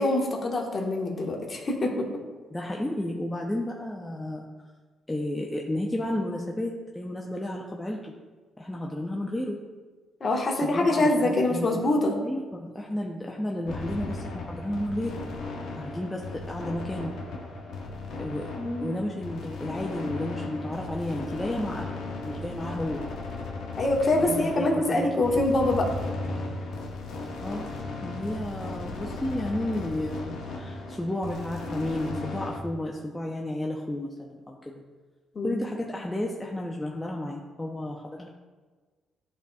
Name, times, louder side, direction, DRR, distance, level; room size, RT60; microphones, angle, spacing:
voice 1, 0.0-2.0 10.2-12.1 18.6-18.9 23.8-25.9 35.3-35.6, left 2 dB, 40° left, -1 dB, 1.3 m, -25 dB
voice 2, 2.5-4.5 5.1-8.1 8.6-9.6 10.6-11.8 12.2-15.2 15.8-17.1 18.2-18.5 18.8-23.1 24.3-25.5 27.4-27.7 28.0-34.8 35.4-38.3, left 1 dB, 10° left, -1 dB, 0.5 m, -32 dB
sound 1, 13.6-32.6, left 3 dB, 80° left, 0.9 m, -36 dB
11.0 x 4.0 x 2.3 m, 1.4 s
cardioid pair, 90°, 0 cm